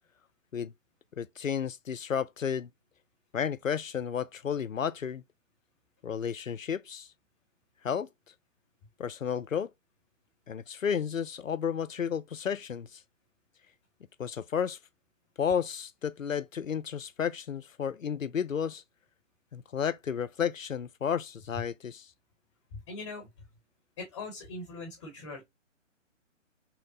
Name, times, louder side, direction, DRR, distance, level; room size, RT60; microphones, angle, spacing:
voice 1, 1.2-2.7 3.3-5.2 6.0-7.1 7.8-8.1 9.0-9.7 10.5-13.0 14.2-14.8 15.4-18.8 19.5-22.1, left 7 dB, 90° left, 0.5 m, -32 dB
voice 2, 22.7-23.3 24.0-25.4, left 3 dB, 25° left, 1.0 m, -41 dB
5.6 x 2.0 x 2.5 m
figure-of-eight pair, 135°, 38 cm